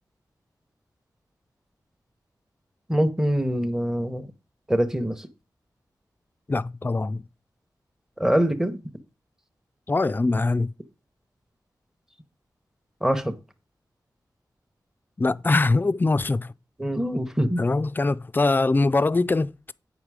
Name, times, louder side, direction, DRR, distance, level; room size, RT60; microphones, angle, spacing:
voice 1, 2.9-4.3 4.7-5.3 8.2-8.8 13.0-13.3 16.8-17.6, equal, 5° right, 0.8 m, -24 dB
voice 2, 6.5-7.2 9.9-10.7 15.2-16.5 17.6-19.7, left 3 dB, 25° left, 0.3 m, -23 dB
8.8 x 5.5 x 4.8 m
wide cardioid pair, 95°, 7 cm